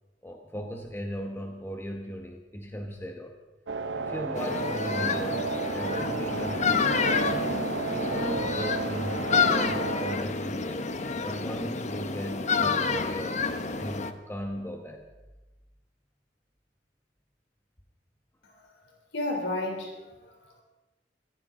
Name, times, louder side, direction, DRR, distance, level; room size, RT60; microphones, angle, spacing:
voice 1, 0.2-3.4 3.9-7.4 7.9-9.3 9.6-10.9 11.2-13.4 13.8-15.1, equal, 15° left, 2 dB, 1.1 m, -37 dB
sound 1, 3.7-10.2, right 4 dB, 80° right, 0.8 m, -33 dB
sound 2, 4.4-14.1, left 4 dB, 40° left, 0.9 m, -29 dB
voice 2, 19.1-20.6, left 2 dB, 75° left, 1 dB, 3.4 m, -33 dB
23.5 x 14.0 x 3.8 m, 1.1 s
head